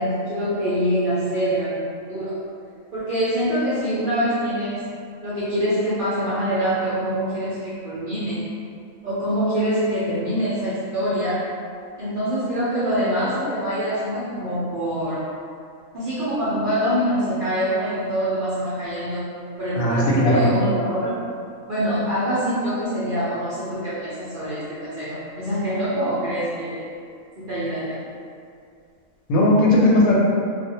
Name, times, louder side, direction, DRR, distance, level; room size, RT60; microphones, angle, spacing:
voice 1, 0.0-2.3 2.9-4.9 5.2-8.4 9.0-11.4 12.0-15.2 15.9-19.3 19.6-21.1 21.7-26.9 27.4-28.0, equal, 55° right, -11 dB, 0.6 m, -24 dB
voice 2, 19.8-20.5 29.3-30.2, left 1 dB, 90° left, -4 dB, 1.0 m, -17 dB
2.4 x 2.0 x 2.7 m, 2.3 s
omnidirectional pair, 1.4 m